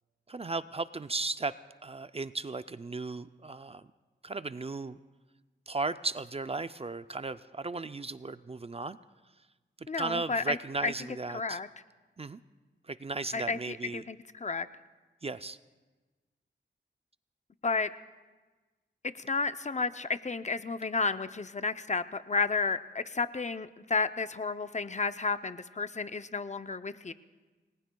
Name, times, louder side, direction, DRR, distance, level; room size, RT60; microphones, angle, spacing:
voice 1, 0.3-1.5 1.8-3.9 4.2-5.0 5.7-9.0 9.8-11.6 12.2-12.4 12.9-14.1 15.2-15.6, right 3 dB, 30° right, 13 dB, 0.4 m, -36 dB
voice 2, 9.9-10.6 10.8-10.9 11.3-11.7 13.3-14.7 17.6-17.9 19.0-27.1, left 4 dB, 40° left, 12 dB, 0.5 m, -32 dB
29.0 x 20.0 x 2.3 m, 1.3 s
wide cardioid pair, 85°, 19 cm